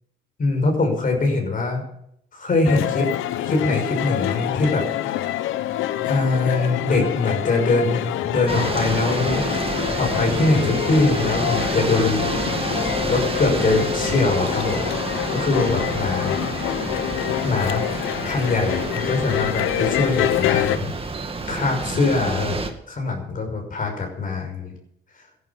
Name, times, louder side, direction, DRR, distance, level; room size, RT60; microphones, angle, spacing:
voice 1, 0.4-1.8 2.3-3.1 3.4-4.8 6.0-9.4 10.0-12.4 13.1-14.9 15.3-16.4 17.4-17.8 18.2-20.9 21.5-22.6 22.9-24.7, left 3 dB, 45° left, 2 dB, 6.0 m, -22 dB
sound 1, 2.6-20.8, left 13 dB, 90° left, 0.9 m, -26 dB
sound 2, 8.5-22.7, right 3 dB, 30° right, 2.1 m, -29 dB
14.5 x 11.5 x 7.3 m, 0.72 s
cardioid pair, 90°, 20 cm